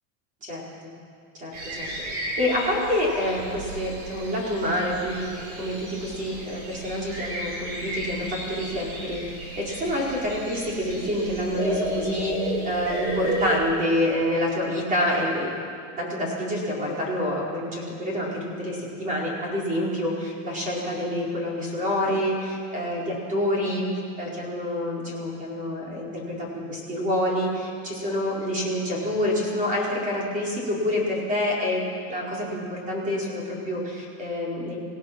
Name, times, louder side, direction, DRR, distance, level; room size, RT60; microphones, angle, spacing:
voice 1, 1.4-1.9 2.4-15.5 16.0-26.1 26.4-31.8 32.1-34.8, left 1 dB, 20° right, -3 dB, 4.8 m, -27 dB
sound 1, 1.5-13.6, right 1 dB, 50° right, 6.1 m, -33 dB
27.5 x 17.0 x 6.1 m, 2.3 s
supercardioid pair, 170°, 42 cm